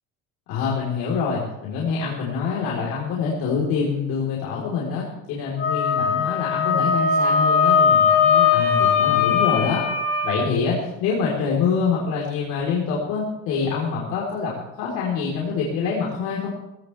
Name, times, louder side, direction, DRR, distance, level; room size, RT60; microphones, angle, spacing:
voice 1, 0.5-9.8 10.2-16.5, left 5 dB, 65° left, -4 dB, 4.1 m, -25 dB
Wind instrument woodwind instrument, 5.6-10.4, left 6 dB, 50° left, 5.1 m, -19 dB
19.5 x 17.0 x 3.5 m, 0.94 s
cardioid pair, 145°, 30 cm